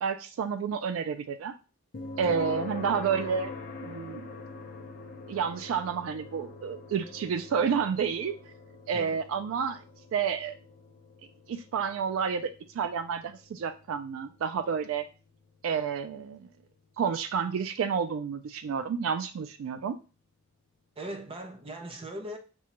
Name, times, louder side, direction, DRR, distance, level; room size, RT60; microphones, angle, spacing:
voice 1, 0.0-1.5 2.2-3.5 3.8-4.3 5.3-8.3 8.9-9.8 10.1-10.6 11.5-12.5 12.7-15.0 15.6-16.5 17.0-20.0, right 6 dB, 90° right, 0.3 m, -30 dB
sound 1, 1.9-16.9, left 3 dB, 45° left, 0.5 m, -44 dB
voice 2, 21.0-22.4, right 1 dB, 25° right, 0.5 m, -39 dB
6.0 x 2.2 x 2.9 m
head